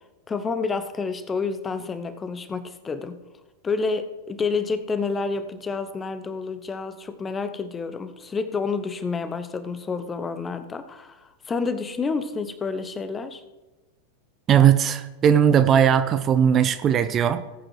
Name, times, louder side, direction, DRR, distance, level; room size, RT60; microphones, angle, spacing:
voice 1, 0.3-3.1 3.6-13.4, left 4 dB, 20° left, 10 dB, 0.9 m, -29 dB
voice 2, 14.5-17.4, right 8 dB, 30° right, 12 dB, 0.6 m, -18 dB
18.5 x 8.8 x 3.3 m, 1.1 s
figure-of-eight pair, 90°, 0 cm